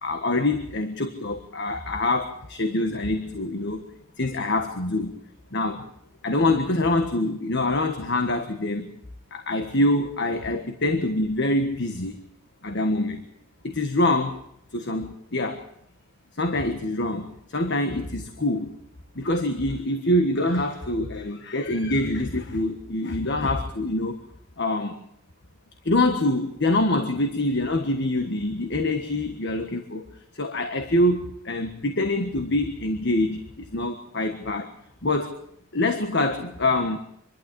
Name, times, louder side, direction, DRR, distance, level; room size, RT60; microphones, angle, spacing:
voice 1, 0.0-3.8 4.2-5.2 5.5-5.8 6.2-8.9 9.3-12.2 12.6-13.2 13.6-14.4 14.7-15.6 16.4-18.7 19.1-24.2 24.6-25.0 25.8-30.1 30.4-34.7 35.0-35.3 35.7-37.0, left 2 dB, 55° left, 6 dB, 1.5 m, -25 dB
26.0 x 12.0 x 8.6 m, 0.74 s
head